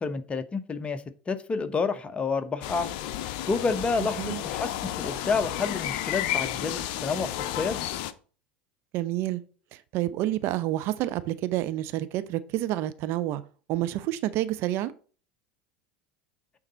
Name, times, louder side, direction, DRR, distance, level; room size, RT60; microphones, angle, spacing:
voice 1, 0.0-2.9 3.5-7.8, left 4 dB, 25° left, 1.0 m, -29 dB
Woodland Ambience Sound Effect - Duddingston Village, 2.6-8.1, left 12 dB, 60° left, 0.6 m, -32 dB
voice 2, 8.9-9.4 9.7-13.4 13.7-14.9, right 14 dB, 55° right, 0.5 m, -29 dB
8.9 x 3.9 x 4.2 m
hypercardioid pair, 80°, 5 cm